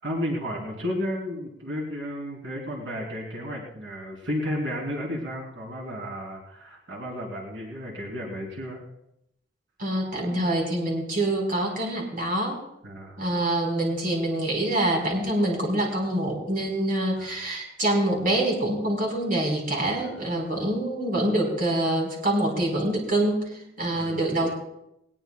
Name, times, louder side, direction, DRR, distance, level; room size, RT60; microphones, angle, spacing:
voice 1, 0.0-8.8 12.8-13.2 17.2-17.3 20.0-20.2 23.9-24.3, equal, 90° right, -2 dB, 3.4 m, -33 dB
voice 2, 9.8-12.6 13.2-24.5, right 1 dB, 50° right, 0 dB, 4.4 m, -25 dB
20.0 x 20.0 x 2.3 m, 0.82 s
head